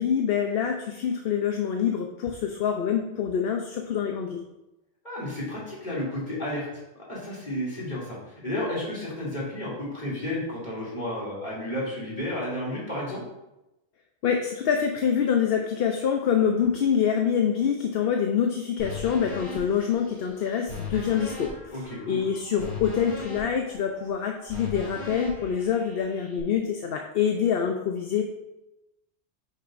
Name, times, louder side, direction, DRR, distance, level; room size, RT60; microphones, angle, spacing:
voice 1, 0.0-4.4 14.2-21.6 22.1-28.2, left 8 dB, 60° left, 3 dB, 0.8 m, -25 dB
voice 2, 5.0-6.7 7.1-13.2 21.7-22.2, left 1 dB, 40° left, -7 dB, 2.8 m, -32 dB
sound 1, 18.8-26.4, left 3 dB, 75° left, 3.0 m, -39 dB
9.0 x 6.4 x 2.5 m, 0.95 s
omnidirectional pair, 1.2 m